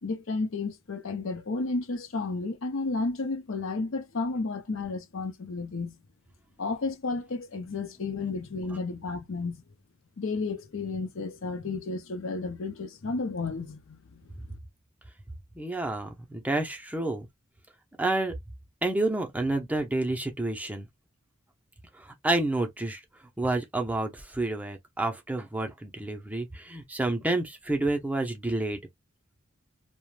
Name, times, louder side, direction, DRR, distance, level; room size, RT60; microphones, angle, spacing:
voice 1, 0.0-6.0 6.6-9.6 10.2-14.3, left 3 dB, 70° left, 0.6 m, -32 dB
voice 2, 15.5-17.3 18.0-18.3 18.8-20.9 21.9-23.0 23.4-28.8, right 2 dB, 5° right, 0.5 m, -29 dB
2.4 x 2.1 x 3.1 m
head